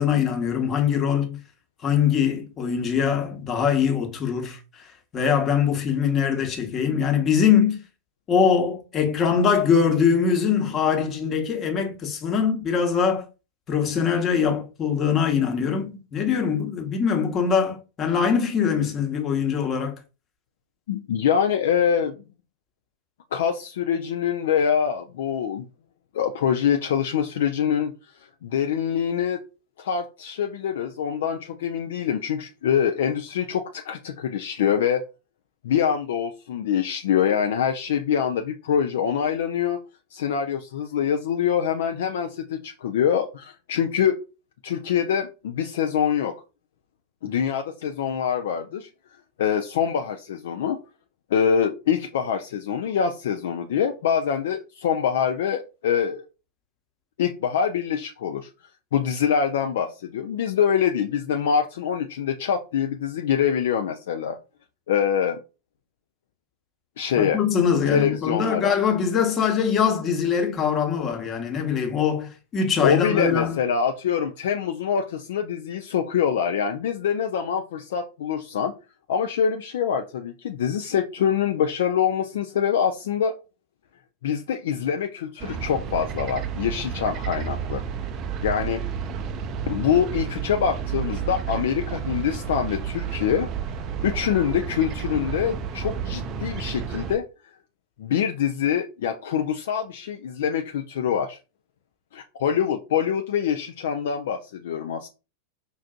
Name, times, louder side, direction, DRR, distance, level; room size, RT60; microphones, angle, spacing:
voice 1, 0.0-1.4 1.8-7.8 8.3-13.3 13.7-19.9 67.2-73.6, left 7 dB, 25° left, 1.0 m, -22 dB
voice 2, 20.9-22.2 23.3-25.7 26.1-27.9 28.4-29.4 29.8-35.0 35.6-39.8 40.1-44.2 44.6-46.3 47.2-48.9 49.4-50.8 51.3-56.2 57.2-58.5 58.9-64.4 64.9-65.4 67.0-67.4 67.9-68.7 72.8-78.7 79.1-83.3 84.2-87.8 88.4-88.8 89.7-93.5 94.0-97.2 98.0-101.4 102.1-105.1, left 8 dB, 60° left, 0.4 m, -24 dB
sound 1, 85.4-97.2, right 7 dB, 35° right, 0.4 m, -31 dB
5.3 x 2.5 x 2.4 m
figure-of-eight pair, 90°, 0 cm